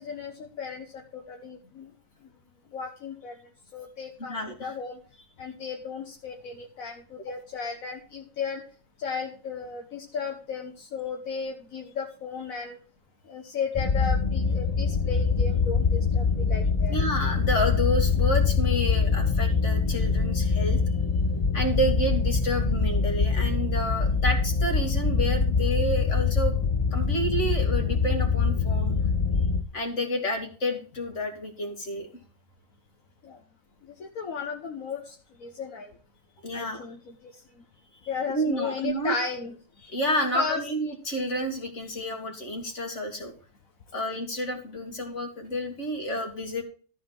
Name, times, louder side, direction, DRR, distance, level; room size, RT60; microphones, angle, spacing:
voice 1, 0.0-1.9 2.7-3.3 3.7-5.0 5.4-8.6 9.0-12.8 13.3-16.9 33.2-33.4 34.0-35.9 36.5-37.3 38.1-39.5 40.3-40.6, left 5 dB, 80° left, 2 dB, 1.6 m, -35 dB
voice 2, 4.3-4.7 16.9-20.8 21.5-26.5 26.9-28.9 29.7-32.1 36.4-36.9 38.3-39.1 39.8-43.3 43.9-46.6, equal, 55° left, 2 dB, 2.7 m, -30 dB
sound 1, 13.7-29.6, left 5 dB, 30° left, 0.6 m, -24 dB
13.5 x 4.6 x 7.5 m, 0.39 s
omnidirectional pair, 1.4 m